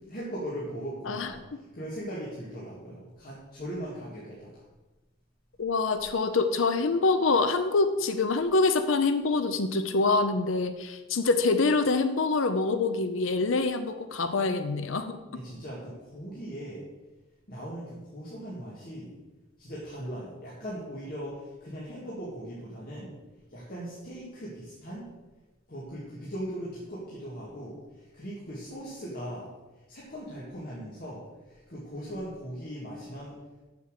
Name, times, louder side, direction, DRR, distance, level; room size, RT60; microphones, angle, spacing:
voice 1, 0.0-4.6 15.3-16.9 17.5-19.1 19.6-23.1 23.5-25.1 25.7-29.5 29.9-33.4, equal, 45° left, -6 dB, 2.1 m, -39 dB
voice 2, 5.6-15.2, left 3 dB, 70° left, 9 dB, 0.6 m, -25 dB
7.4 x 7.0 x 6.5 m, 1.1 s
head